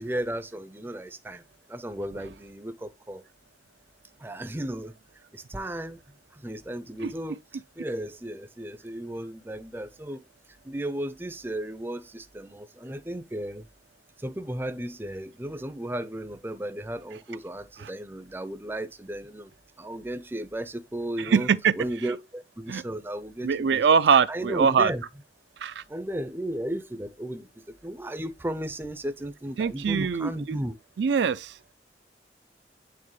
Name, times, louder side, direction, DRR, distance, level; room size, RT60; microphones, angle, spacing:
voice 1, 0.0-1.4 1.7-3.2 4.2-4.9 5.3-6.0 6.3-10.2 10.6-13.7 14.2-19.5 19.8-21.5 21.7-23.9 24.3-25.0 25.9-30.8, right 1 dB, 10° right, 0.5 m, -35 dB
voice 2, 21.3-21.7 22.7-22.8 23.4-24.9 25.6-25.8 29.6-30.6 31.0-31.5, right 6 dB, 80° right, 0.4 m, -22 dB
8.7 x 3.5 x 3.1 m
head